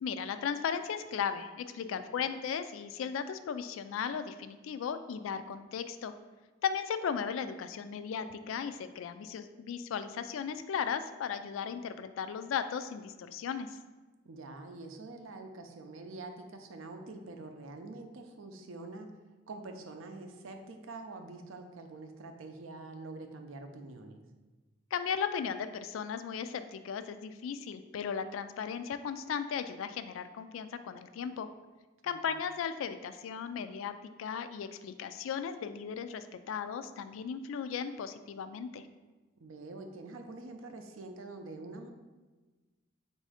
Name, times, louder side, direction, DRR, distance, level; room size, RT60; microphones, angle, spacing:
voice 1, 0.0-6.1 6.6-13.8 24.9-31.5 32.0-33.9 34.2-38.9, left 7 dB, 80° left, 11 dB, 0.3 m, -36 dB
voice 2, 1.8-2.2 14.2-19.1 19.5-24.2 32.0-32.2 39.4-41.9, right 2 dB, 85° right, 6 dB, 0.5 m, -46 dB
4.1 x 2.7 x 4.8 m, 1.2 s
head